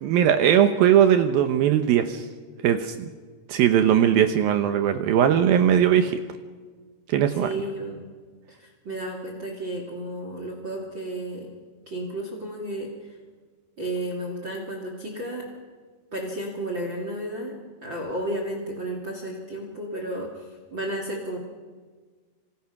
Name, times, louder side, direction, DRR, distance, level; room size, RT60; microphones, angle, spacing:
voice 1, 0.0-2.3 2.6-3.1 3.5-6.2 7.1-7.5, right 9 dB, 75° right, 8 dB, 2.3 m, -19 dB
voice 2, 7.4-8.0 8.5-11.5 11.9-12.9 13.8-15.5 16.1-21.4, right 1 dB, 30° right, 1 dB, 2.6 m, -33 dB
27.0 x 25.5 x 5.9 m, 1.5 s
omnidirectional pair, 5.0 m